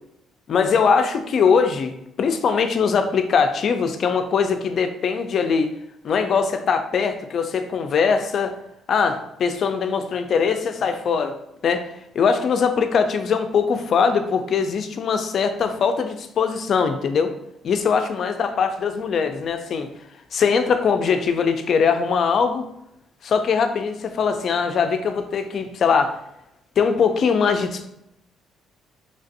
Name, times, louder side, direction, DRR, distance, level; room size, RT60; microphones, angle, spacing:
voice 1, 0.5-5.7 6.0-8.6 8.9-11.4 11.6-11.8 12.1-17.3 17.6-19.9 20.3-22.7 23.2-26.2 26.8-27.9, left 6 dB, 50° left, 7 dB, 0.3 m, -21 dB
3.3 x 2.4 x 2.6 m, 0.81 s
cardioid pair, 120°, 0 cm